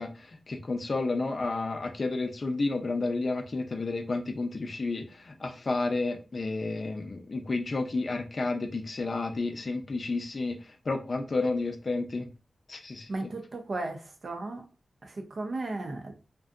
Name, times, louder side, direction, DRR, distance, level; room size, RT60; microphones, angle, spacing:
voice 1, 0.0-12.3 12.7-13.3, left 3 dB, 50° left, 5 dB, 0.5 m, -31 dB
voice 2, 13.1-14.6 15.0-16.1, right 2 dB, 60° right, 4 dB, 0.6 m, -35 dB
2.6 x 2.2 x 2.4 m, 0.33 s
wide cardioid pair, 85°, 0 cm